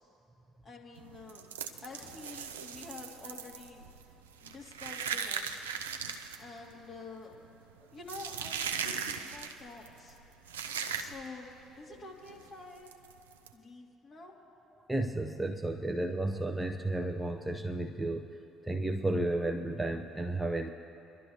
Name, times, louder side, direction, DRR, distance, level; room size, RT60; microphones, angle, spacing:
voice 1, 0.6-1.5 1.8-3.8 4.4-5.7 6.4-7.4 7.9-10.2 10.9-12.9 13.5-14.3, left 3 dB, 40° left, -2 dB, 2.4 m, -48 dB
sound 1, 1.0-11.5 11.7-12.0 12.3-12.4 12.9-13.5, right 7 dB, 85° right, 0.5 m, -39 dB
voice 2, 14.9-18.3 18.7-20.7, right 1 dB, 10° right, 5 dB, 0.7 m, -32 dB
24.0 x 12.0 x 2.8 m, 3.0 s
hypercardioid pair, 55°, 0 cm